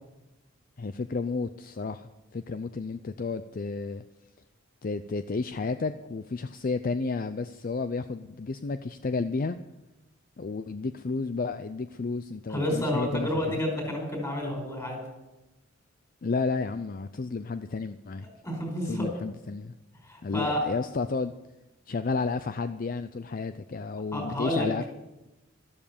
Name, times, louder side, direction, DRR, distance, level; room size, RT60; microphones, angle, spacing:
voice 1, 0.8-4.0 4.8-9.6 10.4-13.6 16.2-18.3 18.9-19.7 20.2-21.3 21.9-24.9, left 4 dB, 45° left, 11 dB, 0.5 m, -32 dB
voice 2, 12.5-15.0 18.4-19.1 20.0-20.6 24.1-24.7, left 1 dB, 15° left, 1 dB, 4.9 m, -30 dB
13.0 x 12.5 x 7.0 m, 1.0 s
head